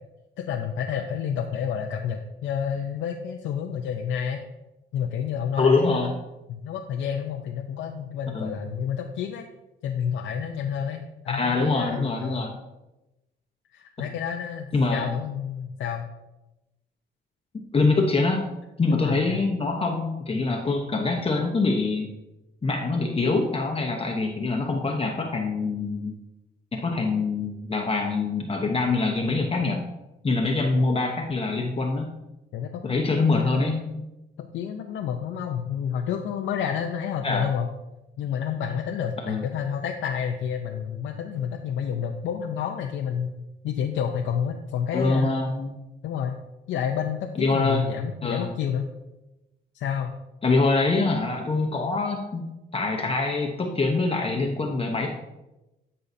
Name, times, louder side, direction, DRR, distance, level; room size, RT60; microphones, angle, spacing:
voice 1, 0.4-4.4 4.9-6.1 6.5-9.5 9.8-12.4 13.7-16.1 18.9-19.4 32.5-34.0 34.4-37.7 38.2-45.3 46.0-46.4 46.7-48.9 49.7-50.1, left 8 dB, 80° left, 2 dB, 0.7 m, -29 dB
voice 2, 5.6-6.1 8.3-8.5 11.3-12.6 14.7-15.1 17.7-18.4 18.8-22.1 22.6-26.1 26.7-29.8 30.2-32.1 32.8-33.7 37.2-37.5 39.3-39.4 44.9-45.7 47.4-47.9 48.2-48.5 50.4-52.4 52.7-55.1, left 3 dB, 30° left, 1 dB, 0.9 m, -24 dB
12.5 x 5.6 x 2.7 m, 1.0 s
cardioid pair, 90°, 20 cm